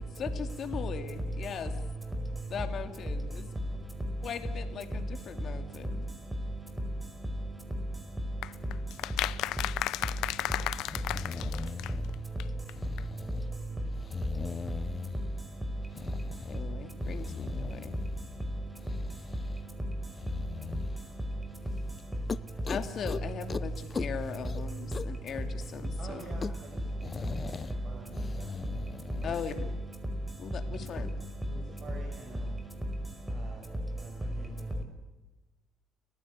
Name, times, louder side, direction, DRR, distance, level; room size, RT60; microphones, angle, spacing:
voice 1, 0.2-1.7 2.5-3.5 4.2-5.8 16.5-17.8 22.7-23.7 24.0-25.5 25.7-26.2 29.2-29.5 30.4-30.6 30.9-31.1, left 7 dB, 50° left, 2.6 m, -38 dB
voice 2, 3.5-11.0 14.7-22.1 25.8-33.3, equal, 10° right, 5.0 m, -36 dB
sound 1, 8.4-12.1 12.4-12.5 12.7-12.8 13.0-13.1, left 15 dB, 80° left, 0.7 m, -34 dB
sound 2, 10.3-10.4 10.8-12.3 12.7-13.5 13.9-15.4 15.9-16.6 17.0-18.4 18.8-19.7 20.2-21.0 21.5-21.7 22.0-22.1 22.3-23.2 23.5-23.7 23.9-25.2 25.6-25.7 25.9-26.0 26.2-27.7 28.1-29.4, left 5 dB, 30° left, 0.7 m, -40 dB
voice 3, 26.0-26.8 27.3-28.5 29.2-29.7 30.6-30.8 31.4-32.6 33.3-33.7 34.0-34.8, right 2 dB, 45° right, 6.2 m, -48 dB
30.0 x 15.5 x 8.3 m
cardioid pair, 110°, 0 cm